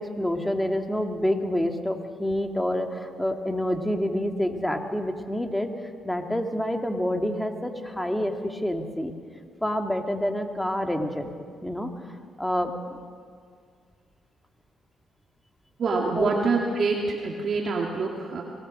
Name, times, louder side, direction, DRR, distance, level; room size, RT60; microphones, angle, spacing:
voice 1, 0.0-5.7 6.0-9.1 9.6-11.3 11.6-11.9 12.4-12.7 16.2-16.3, left 1 dB, 5° left, 4 dB, 2.0 m, -27 dB
voice 2, 15.8-18.4, right 4 dB, 55° right, -1 dB, 2.3 m, -26 dB
24.0 x 19.0 x 6.5 m, 2.1 s
cardioid pair, 90°, 0 cm